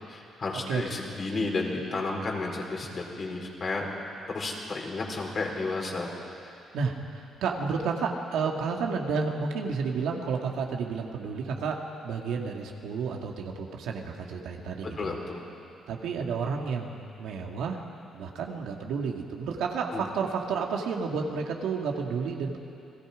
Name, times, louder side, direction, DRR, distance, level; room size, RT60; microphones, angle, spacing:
voice 1, 0.1-3.9 4.3-6.1 14.8-15.4 19.9-20.0, left 3 dB, 45° left, 0 dB, 4.4 m, -32 dB
voice 2, 6.7-15.2 15.9-17.8 18.1-22.6, right 5 dB, 80° right, 1 dB, 2.1 m, -31 dB
29.5 x 19.5 x 5.2 m, 2.7 s
cardioid pair, 90°, 0 cm